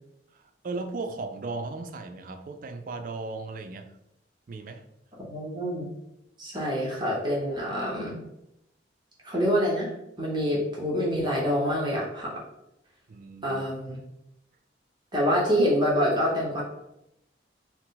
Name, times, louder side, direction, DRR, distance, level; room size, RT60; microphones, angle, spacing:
voice 1, 0.3-3.9 4.5-4.8 13.1-13.6, right 3 dB, 50° right, 7 dB, 0.3 m, -36 dB
voice 2, 5.3-5.9 6.4-8.2 9.2-9.9 10.2-12.3 13.4-14.0 15.1-16.6, equal, 25° right, -5 dB, 0.8 m, -26 dB
4.3 x 2.0 x 4.0 m, 0.86 s
head